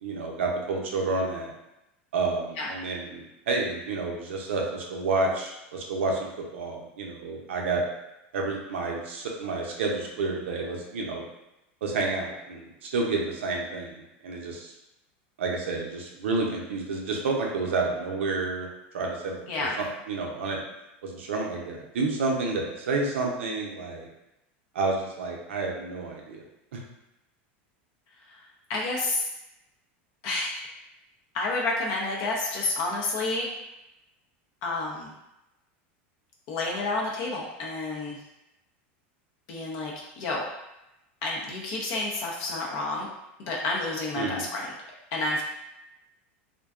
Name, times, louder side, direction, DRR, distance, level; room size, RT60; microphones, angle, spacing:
voice 1, 0.0-1.5 2.1-7.8 8.3-11.2 11.8-14.7 15.4-18.7 18.9-19.7 20.1-20.6 21.0-24.1 24.7-26.4 26.7-26.8 44.2-44.4, right 3 dB, 90° right, -1 dB, 0.5 m, -30 dB
voice 2, 28.7-29.3 30.2-30.6 31.3-33.5 34.6-35.1 36.5-38.2 39.5-40.5 41.2-43.1 43.4-44.7 45.1-45.4, left 2 dB, 60° left, -2 dB, 0.5 m, -29 dB
2.5 x 2.2 x 2.3 m, 0.91 s
supercardioid pair, 110°, 6 cm